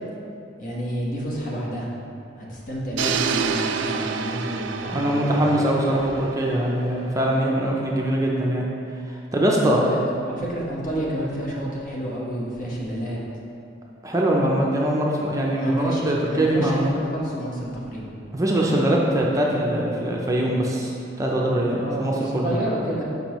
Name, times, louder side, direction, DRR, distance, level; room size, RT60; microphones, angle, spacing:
voice 1, 0.6-1.9 2.4-5.5 9.6-13.2 15.6-18.1 21.8-23.0, equal, 45° left, -5 dB, 1.2 m, -29 dB
sound 1, 3.0-7.0, right 6 dB, 75° right, 0.3 m, -28 dB
voice 2, 4.9-8.7 9.1-9.8 14.0-16.9 18.3-22.6, right 1 dB, 20° right, -3 dB, 0.5 m, -22 dB
6.8 x 5.3 x 3.0 m, 2.6 s
head